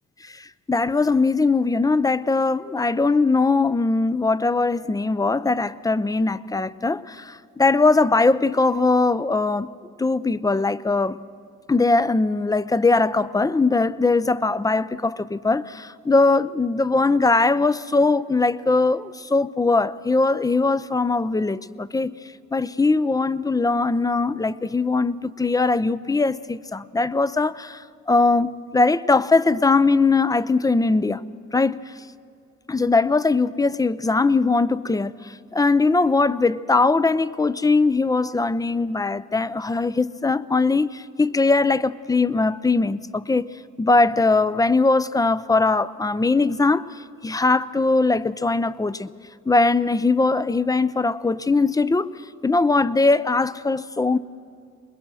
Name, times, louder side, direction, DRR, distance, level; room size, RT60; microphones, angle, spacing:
voice 1, 0.2-9.7 10.0-11.2 11.7-22.1 22.5-31.2 31.5-31.8 32.7-43.5 43.8-49.1 49.5-52.1 52.4-54.2, left 3 dB, 10° left, 0.5 m, -20 dB
24.5 x 21.0 x 6.3 m
cardioid pair, 90°, 30 cm